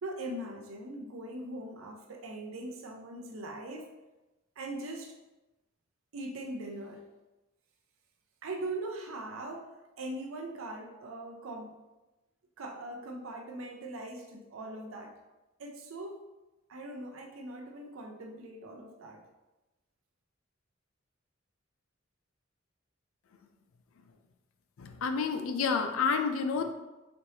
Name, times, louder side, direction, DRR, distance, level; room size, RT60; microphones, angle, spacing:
voice 1, 0.0-3.9 4.6-5.2 6.1-7.0 8.4-11.8 12.6-15.1 15.6-16.3 16.7-19.2, right 1 dB, 90° right, 2 dB, 0.5 m, -41 dB
voice 2, 24.8-26.7, left 5 dB, 90° left, 6 dB, 0.4 m, -29 dB
4.2 x 3.2 x 2.7 m, 1.0 s
head